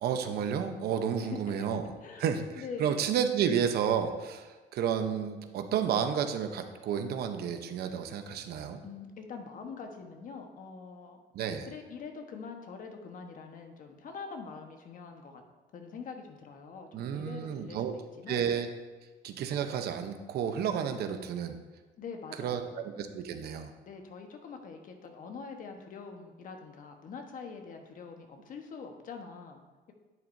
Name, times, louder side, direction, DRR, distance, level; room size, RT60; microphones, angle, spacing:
voice 1, 0.0-8.8 11.3-11.7 16.9-17.9 18.3-18.7 19.2-21.6 22.4-23.7, right 8 dB, 70° right, 7 dB, 0.9 m, -31 dB
voice 2, 2.6-3.0 8.8-11.2 11.7-15.4 15.7-17.8 18.2-18.5 22.0-22.8 23.9-29.6, left 5 dB, 50° left, 4 dB, 1.3 m, -44 dB
10.5 x 8.7 x 2.7 m, 1.3 s
cardioid pair, 110°, 17 cm